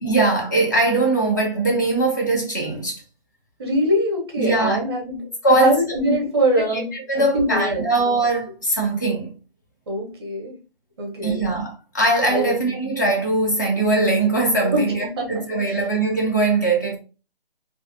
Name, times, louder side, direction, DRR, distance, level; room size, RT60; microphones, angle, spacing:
voice 1, 0.0-3.0 4.4-4.8 5.4-5.8 6.0-6.2 6.6-9.3 11.2-17.0, right 2 dB, 20° left, 0.5 m, -21 dB
voice 2, 3.6-5.2 5.5-6.9 7.1-7.8 9.9-10.5 11.0-11.4 12.3-12.5 14.6-14.8 15.2-15.8, equal, 25° right, 0.7 m, -23 dB
2.4 x 2.3 x 2.5 m
figure-of-eight pair, 160°, 29 cm